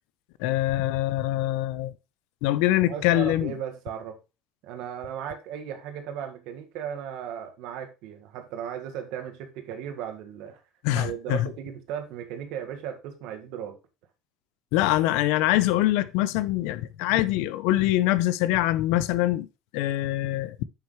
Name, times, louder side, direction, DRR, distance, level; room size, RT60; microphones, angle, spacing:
voice 1, 0.4-1.9 2.4-3.5 10.8-11.5 14.7-19.5 19.7-20.6, left 15 dB, 75° left, 0.6 m, -24 dB
voice 2, 2.9-4.2 4.6-10.6 10.9-13.8 17.0-17.3, right 9 dB, 65° right, 1.7 m, -36 dB
9.5 x 6.4 x 3.2 m
cardioid pair, 170°, 0 cm